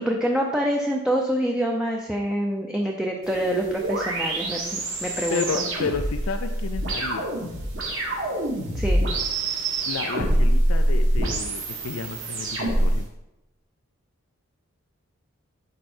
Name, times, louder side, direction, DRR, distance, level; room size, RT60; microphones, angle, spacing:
voice 1, 0.0-5.6 8.7-9.0, equal, 5° right, 0 dB, 0.6 m, -26 dB
sound 1, 3.2-13.0, right 1 dB, 60° right, 2.3 m, -25 dB
voice 2, 5.3-7.3 9.9-13.1, left 5 dB, 70° left, 8 dB, 0.4 m, -31 dB
11.0 x 4.5 x 4.4 m, 0.94 s
head